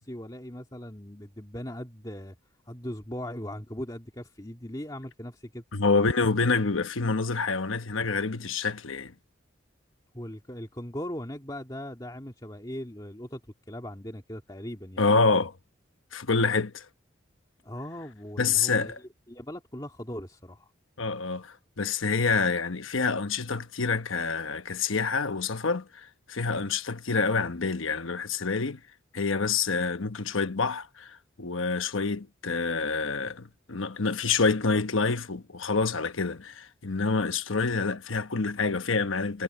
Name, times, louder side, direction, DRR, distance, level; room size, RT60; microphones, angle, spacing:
voice 1, 0.0-2.4 2.6-5.6 10.1-13.4 13.7-15.0 17.6-18.9 19.3-20.7, left 1 dB, 20° left, 2.4 m, -39 dB
voice 2, 5.7-9.1 15.0-15.5 16.1-16.9 18.4-19.0 21.0-28.8 29.1-39.4, left 4 dB, 85° left, 1.1 m, -27 dB
head